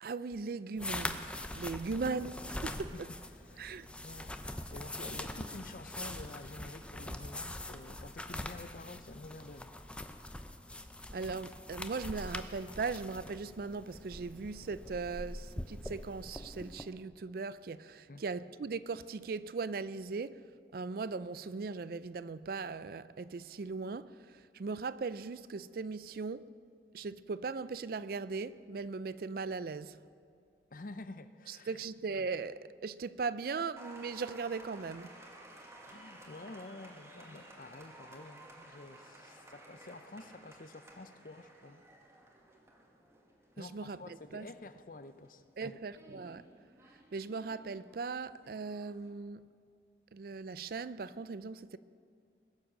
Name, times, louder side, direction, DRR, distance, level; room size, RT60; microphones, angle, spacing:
voice 1, 0.0-2.9 3.6-3.9 11.1-20.4 20.7-26.5 26.9-30.0 31.5-35.1 43.6-44.5 45.6-46.5 47.1-49.5 50.1-51.8, right 4 dB, 55° right, 0.4 m, -39 dB
sound 1, 0.8-16.8, left 1 dB, 5° left, 0.5 m, -43 dB
voice 2, 2.7-3.0 3.5-9.9 18.1-18.2 30.7-31.8 35.9-41.8 43.6-45.8, left 2 dB, 50° left, 0.6 m, -49 dB
Applause, 33.8-49.1, right 1 dB, 15° right, 1.4 m, -55 dB
21.0 x 7.4 x 6.3 m
head